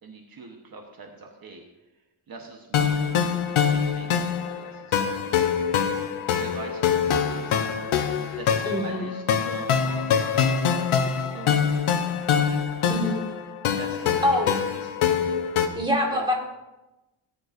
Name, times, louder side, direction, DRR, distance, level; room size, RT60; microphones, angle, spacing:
voice 1, 0.0-1.6 1.9-3.2 3.5-5.3 6.4-7.7 8.4-10.6 11.3-11.7 13.7-14.9 16.1-16.3, right 4 dB, 45° right, 2 dB, 1.2 m, -43 dB
sound 1, 2.7-15.7, left 7 dB, 85° left, 1.0 m, -24 dB
voice 2, 8.7-9.1 12.9-13.2 14.2-14.5 15.8-16.3, left 1 dB, 10° right, 0 dB, 1.9 m, -24 dB
18.0 x 10.0 x 2.6 m, 1.0 s
wide cardioid pair, 165°, 48 cm